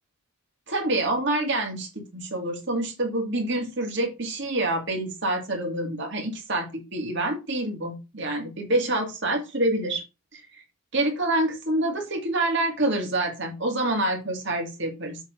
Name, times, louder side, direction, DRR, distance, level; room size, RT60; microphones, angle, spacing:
voice 1, 0.7-10.0 10.3-10.6 10.9-15.2, right 1 dB, 55° right, 2 dB, 2.2 m, -27 dB
7.3 x 3.8 x 5.0 m, 0.26 s
head